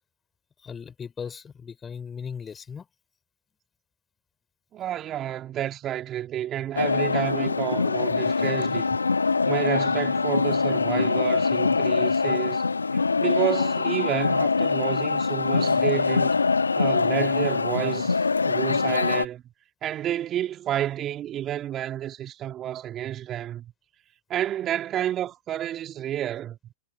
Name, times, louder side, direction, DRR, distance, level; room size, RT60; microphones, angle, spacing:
voice 1, 0.6-2.8, left 6 dB, 20° left, 5.0 m, -37 dB
voice 2, 4.7-8.9 9.5-12.6 12.9-16.4 16.8-19.4 19.8-23.7 24.3-26.6, right 11 dB, 35° right, 2.7 m, -30 dB
sound 1, 6.8-19.3, left 4 dB, 85° left, 1.1 m, -23 dB
figure-of-eight pair, 95°, 0 cm